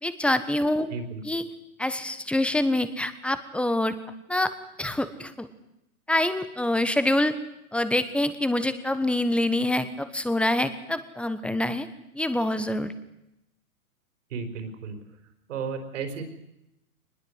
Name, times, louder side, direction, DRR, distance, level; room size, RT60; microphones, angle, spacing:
voice 1, 0.0-0.9 1.2-1.4 1.8-3.9 4.3-4.5 4.8-5.5 6.1-7.3 7.7-11.9 12.1-12.9, left 1 dB, 5° left, 12 dB, 1.2 m, -25 dB
voice 2, 0.9-1.2 14.3-15.0 15.5-16.2, right 5 dB, 55° right, 8 dB, 4.7 m, -33 dB
23.5 x 20.5 x 8.1 m, 0.86 s
figure-of-eight pair, 115°, 44 cm